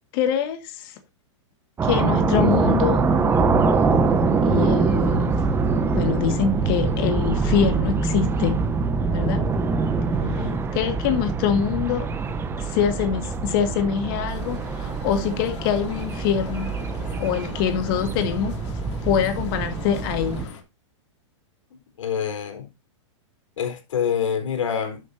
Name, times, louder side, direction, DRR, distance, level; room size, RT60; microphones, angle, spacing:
voice 1, 0.1-1.0 1.8-3.0 4.4-5.4 5.9-8.6 9.1-9.4 10.4-12.1 12.6-16.7 17.2-18.5 19.0-20.5, left 8 dB, 45° left, 1.8 m, -24 dB
sound 1, 1.8-20.5, right 4 dB, 15° right, 1.1 m, -24 dB
voice 2, 10.2-10.6 22.0-22.6 23.6-25.0, left 7 dB, 80° left, 3.8 m, -26 dB
sound 2, 14.3-20.6, left 7 dB, 65° left, 2.9 m, -42 dB
11.5 x 7.0 x 2.7 m
hypercardioid pair, 145°, 16 cm